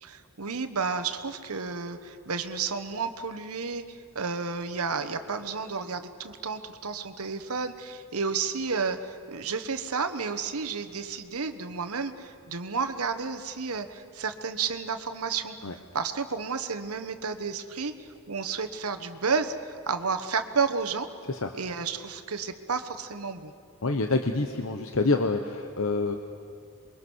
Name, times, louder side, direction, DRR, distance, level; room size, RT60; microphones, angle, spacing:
voice 1, 0.0-17.9 18.3-21.1 21.5-23.5, right 5 dB, 75° right, 9 dB, 1.3 m, -31 dB
voice 2, 23.8-26.1, left 3 dB, 65° left, 5 dB, 1.1 m, -27 dB
27.5 x 23.0 x 6.4 m, 2.4 s
head